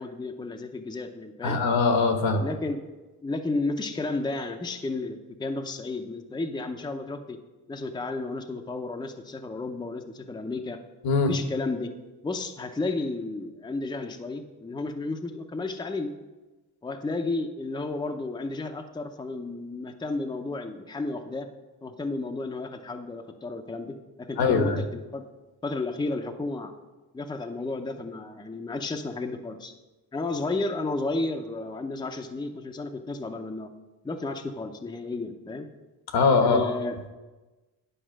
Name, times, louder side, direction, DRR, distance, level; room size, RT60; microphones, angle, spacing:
voice 1, 0.0-1.6 2.4-2.8 3.2-7.4 7.7-10.8 11.3-11.9 12.2-16.1 16.8-21.5 21.8-25.2 25.6-26.7 27.1-29.7 30.1-33.7 34.0-35.7 36.4-37.1, left 3 dB, 10° left, 5 dB, 0.7 m, -32 dB
voice 2, 1.4-2.4 11.0-11.3 24.4-24.8 36.1-36.7, left 4 dB, 70° left, 7 dB, 1.2 m, -22 dB
10.0 x 5.0 x 6.3 m, 1.2 s
cardioid pair, 110°, 38 cm